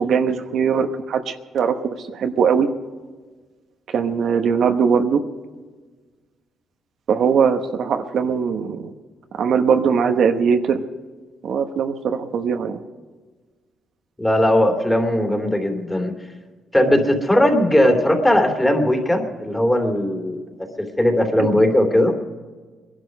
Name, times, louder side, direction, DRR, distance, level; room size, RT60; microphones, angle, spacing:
voice 1, 0.0-2.7 3.9-5.2 7.1-8.9 9.3-10.8 11.4-12.8 21.4-21.5, right 6 dB, 65° right, 6 dB, 1.1 m, -20 dB
voice 2, 14.2-16.1 16.7-20.4 20.8-22.2, left 1 dB, 10° left, 3 dB, 3.0 m, -18 dB
21.0 x 11.5 x 5.4 m, 1.4 s
cardioid pair, 90°, 0 cm